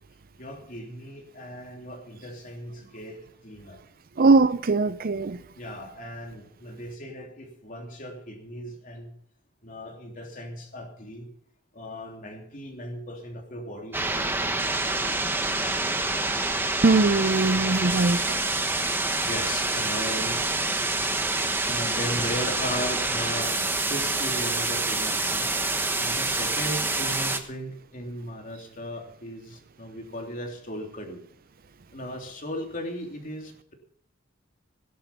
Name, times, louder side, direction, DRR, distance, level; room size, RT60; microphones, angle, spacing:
voice 1, 0.4-3.8 5.6-9.1 9.6-11.3 11.7-14.9 19.1-20.7 21.6-25.5 26.0-31.2 31.9-33.7, equal, 40° left, 3.3 m, -37 dB
voice 2, 4.2-5.4 16.8-18.4, right 3 dB, 45° right, 0.6 m, -21 dB
sound 1, 13.9-27.4, right 2 dB, 10° right, 1.3 m, -27 dB
17.5 x 11.0 x 5.6 m
head